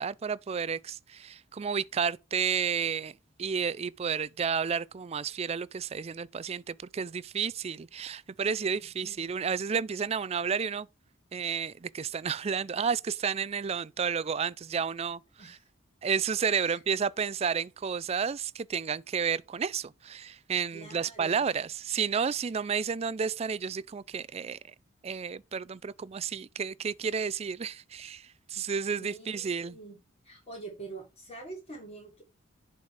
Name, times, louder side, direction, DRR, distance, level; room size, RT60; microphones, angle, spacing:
voice 1, 0.0-10.9 11.3-15.6 16.0-24.7 25.0-29.8, right 6 dB, 30° right, 0.3 m, -31 dB
voice 2, 8.7-9.3 15.4-15.6 16.6-16.8 20.7-21.4 29.0-30.0 30.2-32.2, right 3 dB, 30° left, 3.4 m, -45 dB
10.5 x 4.2 x 4.8 m
head